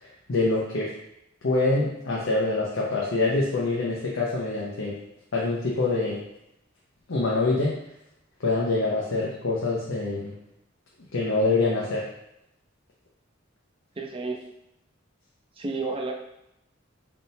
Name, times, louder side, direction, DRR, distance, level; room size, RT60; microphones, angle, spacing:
voice 1, 0.0-0.9 1.4-5.0 5.3-6.2 7.1-7.7 8.4-10.3 11.1-12.1, left 2 dB, 75° left, -4 dB, 0.7 m, -25 dB
voice 2, 14.0-14.4 15.6-16.1, right 3 dB, 25° right, 1 dB, 0.5 m, -30 dB
4.0 x 3.6 x 2.7 m, 0.83 s
head